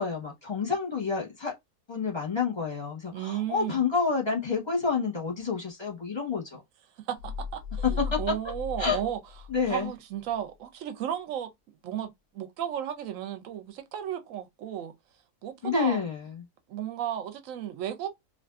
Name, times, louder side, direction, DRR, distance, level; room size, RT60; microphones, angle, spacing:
voice 1, 0.0-1.5 1.9-6.6 7.8-8.2 8.8-9.0 9.5-9.9 15.6-16.4, left 5 dB, 20° left, 0.8 m, -29 dB
voice 2, 3.1-3.8 7.1-9.2 9.7-11.5 11.8-14.9 15.4-16.0 16.7-18.1, right 10 dB, 70° right, 0.9 m, -34 dB
sound 1, 7.2-9.9, left 5 dB, 65° left, 0.8 m, -36 dB
2.5 x 2.5 x 2.3 m
omnidirectional pair, 1.6 m